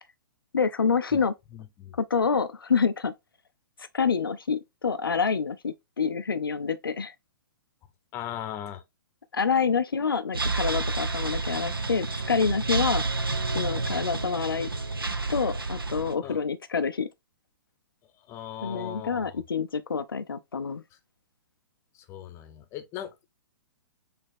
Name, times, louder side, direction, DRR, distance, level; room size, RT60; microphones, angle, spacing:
voice 1, 0.5-1.3 2.0-3.1 3.9-7.1 9.3-13.0 13.5-14.7 15.3-17.1 18.6-20.8, left 5 dB, 80° left, 0.4 m, -27 dB
voice 2, 1.5-2.0 8.1-8.8 16.2-16.4 18.3-19.4 22.1-23.3, left 11 dB, 25° left, 0.7 m, -38 dB
sound 1, 10.3-16.1, right 3 dB, 85° right, 0.6 m, -29 dB
4.2 x 2.9 x 3.2 m
figure-of-eight pair, 115°, 12 cm